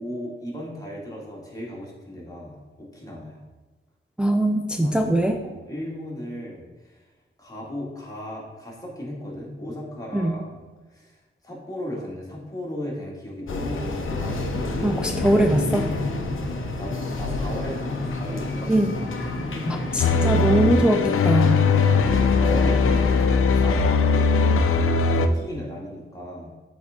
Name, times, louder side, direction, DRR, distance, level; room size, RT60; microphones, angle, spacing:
voice 1, 0.0-3.4 4.8-5.1 5.4-7.0 7.4-10.7 10.9-11.2 11.4-14.9 16.8-18.7 19.2-19.8 22.0-26.5, equal, 15° left, -4 dB, 2.1 m, -36 dB
voice 2, 4.2-5.4 10.1-10.3 14.8-15.9 18.7-19.0 19.7-21.6, right 1 dB, 5° right, 3 dB, 0.4 m, -21 dB
sound 1, 13.5-23.3, left 2 dB, 70° left, 0.9 m, -29 dB
sound 2, 20.0-25.3, left 4 dB, 85° left, 0.5 m, -20 dB
8.1 x 4.0 x 3.7 m, 1.2 s
cardioid pair, 80°, 21 cm